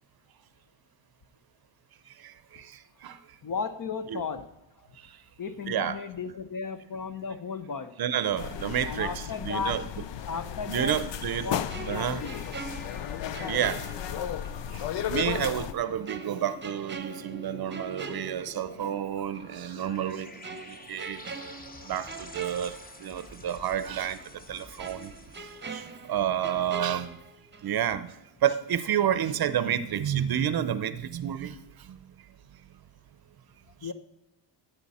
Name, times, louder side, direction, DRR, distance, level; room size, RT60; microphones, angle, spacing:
voice 1, 2.2-2.7 3.0-3.2 4.1-4.2 5.7-6.0 8.0-9.9 10.7-11.5 11.9-12.2 13.5-13.8 14.7-21.2 21.8-24.2 24.5-25.1 25.7-25.8 26.1-27.2 27.6-28.1 28.4-31.5 31.9-32.0, right 10 dB, 50° right, 14 dB, 0.7 m, -30 dB
voice 2, 3.4-4.5 5.4-7.9 8.8-9.8 10.2-11.0 11.4-12.4 33.8-33.9, left 5 dB, 45° left, 10 dB, 1.0 m, -34 dB
sound 1, 8.4-15.7, left 10 dB, 65° left, 0.7 m, -34 dB
sound 2, 11.7-14.6 15.0-15.1 16.1-19.0 19.3-19.5 20.4-23.4 23.7-23.8 24.8-27.8 28.1-28.3, right 4 dB, 25° right, 0.9 m, -43 dB
sound 3, 12.2-25.9, left 2 dB, 20° left, 0.8 m, -48 dB
17.0 x 6.9 x 4.2 m, 0.93 s
cardioid pair, 105°, 46 cm